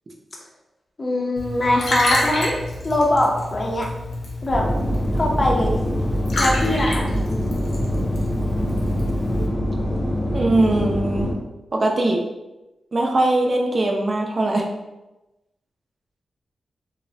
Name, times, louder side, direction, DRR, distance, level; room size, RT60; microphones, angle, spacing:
voice 1, 1.0-2.5 2.8-3.9 4.4-4.7 5.1-5.7 6.4-7.1, left 1 dB, 30° left, -1 dB, 0.5 m, -21 dB
Liquid, 1.4-9.5, left 1 dB, 85° left, 0.7 m, -29 dB
sound 1, 4.5-11.3, equal, 10° left, 0.8 m, -24 dB
voice 2, 10.3-11.3 11.7-12.2 12.9-14.7, right 2 dB, 45° right, 0 dB, 0.5 m, -20 dB
3.0 x 2.0 x 2.6 m, 1.0 s
wide cardioid pair, 90°, 0 cm